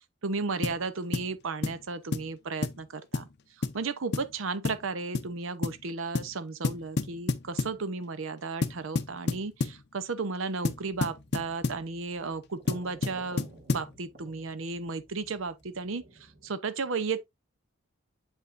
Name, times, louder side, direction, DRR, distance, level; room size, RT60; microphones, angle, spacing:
voice 1, 0.2-3.3 3.6-17.3, right 4 dB, 75° right, 0.7 m, -34 dB
sound 1, 0.6-0.8 1.1-1.3 1.6-1.8 2.1-2.3 2.6-2.8 3.1-3.3 3.6-3.8 4.1-4.3 4.6-4.9 5.1-5.3 5.6-5.8 6.2-6.4 6.6-7.8 8.6-9.8 10.6-11.8 12.7-13.9, left 3 dB, 50° left, 0.6 m, -30 dB
sound 2, 10.7-16.5, right 2 dB, 45° right, 2.1 m, -54 dB
7.3 x 5.4 x 2.5 m
head